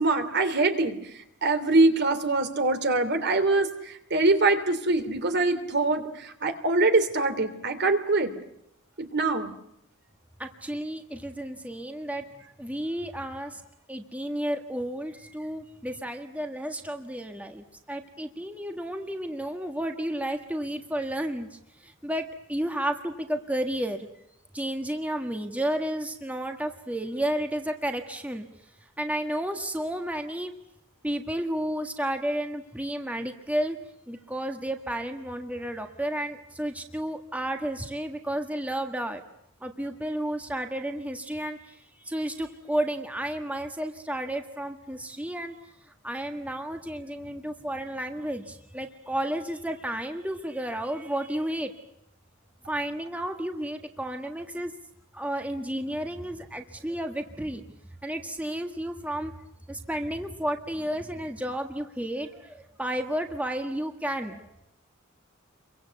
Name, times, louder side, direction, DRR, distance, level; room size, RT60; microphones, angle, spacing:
voice 1, 0.0-8.3 9.0-9.5, right 2 dB, 55° right, 9 dB, 3.0 m, -24 dB
voice 2, 10.4-12.2 12.6-13.6 13.9-24.1 24.5-28.5 29.0-30.5 31.0-33.8 34.1-39.2 39.6-45.6 45.8-51.8 52.7-54.7 55.1-57.7 58.0-59.3 59.7-64.5, right 1 dB, 5° right, 4 dB, 1.5 m, -32 dB
29.0 x 23.5 x 8.2 m, 0.81 s
head